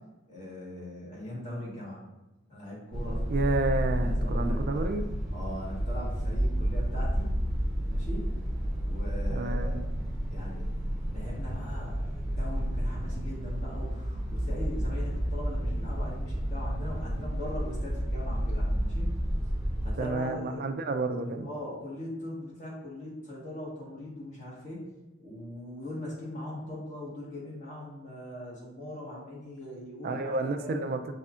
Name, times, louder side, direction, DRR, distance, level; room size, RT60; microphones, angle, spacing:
voice 1, 0.3-2.0 2.5-3.2 3.9-4.9 5.3-7.3 7.9-8.3 8.8-9.8 10.3-10.7 11.1-19.1 19.8-20.6 21.4-24.9 25.2-30.9, left 1 dB, 40° left, -5 dB, 1.4 m, -40 dB
sound 1, 2.9-19.9, equal, 5° left, 0.9 m, -31 dB
voice 2, 3.3-5.2 9.3-9.8 20.0-21.5 30.0-31.0, right 2 dB, 50° right, 7 dB, 0.4 m, -30 dB
5.4 x 3.4 x 2.5 m, 1.0 s
head